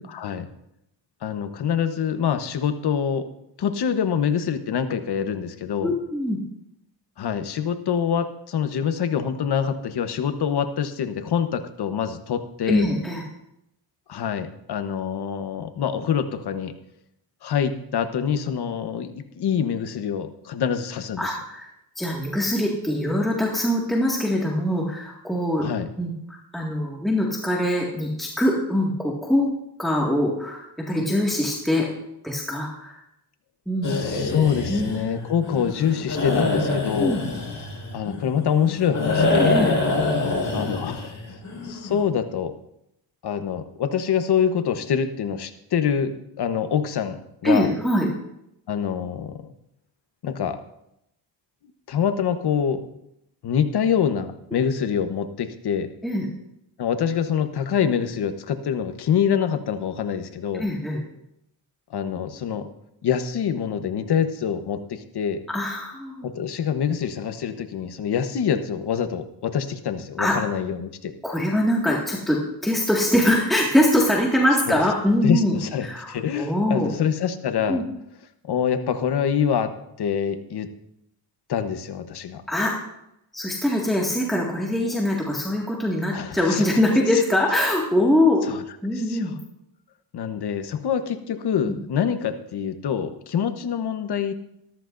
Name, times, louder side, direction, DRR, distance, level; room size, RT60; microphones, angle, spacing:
voice 1, 0.1-0.5 1.2-3.3 3.6-5.9 7.2-12.9 14.1-16.7 17.4-21.3 25.6-25.9 33.8-37.2 37.9-39.6 40.5-41.4 41.6-42.5 43.2-46.1 46.4-47.7 48.7-49.5 50.2-50.6 51.9-52.8 53.4-55.9 56.8-60.6 61.9-62.7 63.0-65.4 66.2-71.1 74.7-74.8 75.2-77.8 78.5-79.7 80.0-80.7 81.5-82.4 86.1-86.6 88.5-88.6 88.9-89.3 90.1-94.3, left 8 dB, 65° left, 9 dB, 1.1 m, -25 dB
voice 2, 5.8-6.4 12.7-13.2 21.2-21.7 22.0-25.7 26.0-29.5 29.8-31.9 32.2-33.0 33.7-33.9 34.7-34.9 37.0-37.2 39.4-39.7 47.4-48.1 56.0-56.3 60.6-61.0 65.5-66.3 70.2-70.3 71.2-75.6 75.8-76.9 77.7-77.8 82.5-82.7 83.3-88.4 88.8-89.3 91.7-91.8, left 1 dB, ahead, -3 dB, 1.9 m, -23 dB
sound 1, 33.8-42.0, left 2 dB, 45° left, 4.6 m, -25 dB
13.5 x 13.5 x 2.6 m, 0.81 s
cardioid pair, 85°, 42 cm